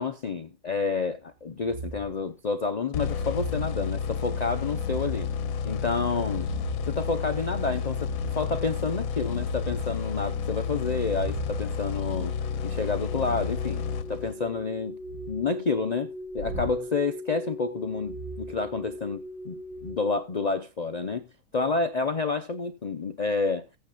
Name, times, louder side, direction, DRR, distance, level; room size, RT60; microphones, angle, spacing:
voice 1, 0.0-5.3 5.6-6.5 6.9-12.3 12.6-15.0 15.3-19.6 19.8-21.3 21.5-23.7, left 4 dB, 90° left, 0.3 m, -29 dB
sound 1, 1.7-2.2 3.0-3.8 4.7-5.4 6.0-7.0 8.0-8.6 9.0-9.9 10.9-13.6 14.9-15.5 16.3-16.8 18.0-19.2 19.7-19.9, right 5 dB, 65° right, 2.4 m, -41 dB
sound 2, 2.9-14.6, left 6 dB, 65° left, 1.0 m, -31 dB
sound 3, 11.8-20.2, left 1 dB, 5° right, 1.5 m, -42 dB
15.5 x 8.8 x 2.4 m
omnidirectional pair, 1.7 m